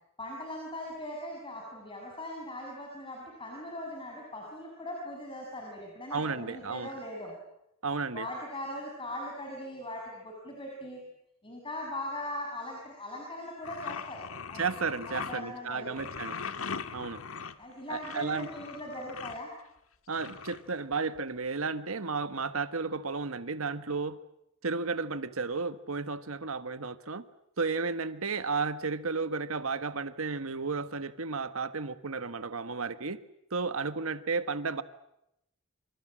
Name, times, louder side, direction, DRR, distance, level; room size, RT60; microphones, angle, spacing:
voice 1, 0.2-7.3 8.1-11.0 11.4-14.6 15.1-16.1 17.6-19.5, left 1 dB, 25° left, 0 dB, 6.4 m, -40 dB
voice 2, 6.1-6.9 7.8-8.3 14.6-16.3 16.9-17.2 17.9-18.5 20.1-24.2 24.6-27.2 27.6-33.2 33.5-34.8, right 4 dB, 75° right, 12 dB, 1.4 m, -33 dB
sound 1, 13.6-15.4 16.0-19.4 20.1-21.2, left 6 dB, 70° left, 1.6 m, -40 dB
27.5 x 27.0 x 7.6 m, 0.80 s
head